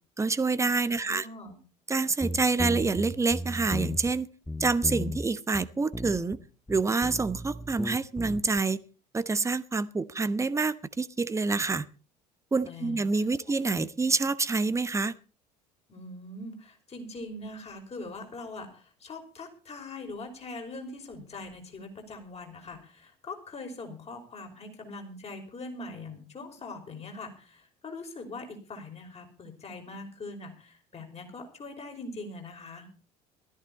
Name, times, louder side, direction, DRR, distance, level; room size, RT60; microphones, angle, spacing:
voice 1, 0.2-1.3 1.9-4.3 4.6-6.4 6.7-8.8 9.1-11.8 12.5-15.1, right 4 dB, 15° right, 15 dB, 1.0 m, -27 dB
voice 2, 1.0-1.6 12.7-13.3 15.9-32.9, left 2 dB, 30° left, 3 dB, 5.4 m, -42 dB
sound 1, 2.2-4.1 4.5-5.3 5.5-5.6 5.9-6.4 6.7-8.6, left 1 dB, 5° left, 1.6 m, -34 dB
16.5 x 14.0 x 4.2 m, 0.35 s
figure-of-eight pair, 65°, 21 cm